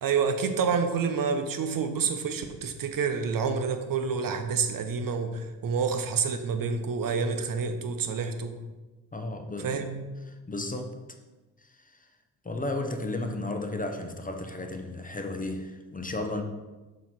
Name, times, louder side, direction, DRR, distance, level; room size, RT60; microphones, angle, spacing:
voice 1, 0.0-8.6 9.6-10.0, right 5 dB, 50° right, 7 dB, 0.9 m, -28 dB
voice 2, 9.1-9.9 10.5-11.0 11.6-12.1 12.4-16.4, left 2 dB, 20° left, 5 dB, 0.8 m, -34 dB
6.9 x 3.1 x 5.8 m, 1.2 s
hypercardioid pair, 50°, 42 cm